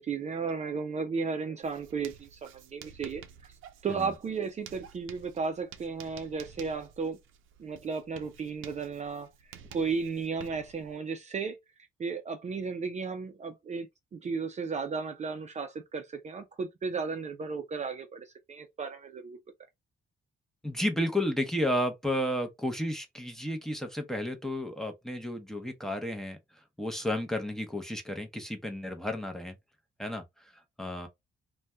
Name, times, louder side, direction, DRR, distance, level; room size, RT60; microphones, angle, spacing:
voice 1, 0.0-3.5 3.8-7.2 7.6-9.3 9.7-11.6 12.0-19.4, right 5 dB, 35° right, 0.5 m, -34 dB
Writing, 1.6-10.9, right 8 dB, 85° right, 0.5 m, -52 dB
voice 2, 20.6-26.4 26.8-29.6 30.0-30.2 30.8-31.1, left 1 dB, ahead, 0.7 m, -32 dB
2.6 x 2.2 x 3.2 m
cardioid pair, 90°, 20 cm